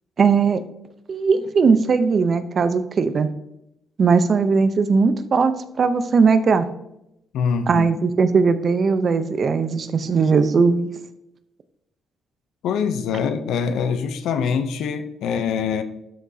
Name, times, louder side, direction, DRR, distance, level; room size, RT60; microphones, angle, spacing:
voice 1, 0.2-0.6 1.1-3.3 4.0-6.7 7.7-10.9, right 5 dB, 45° right, 11 dB, 0.7 m, -18 dB
voice 2, 7.3-7.9 12.6-15.8, left 6 dB, 80° left, 9 dB, 0.6 m, -24 dB
12.5 x 6.2 x 2.8 m, 0.83 s
cardioid pair, 90°, 0 cm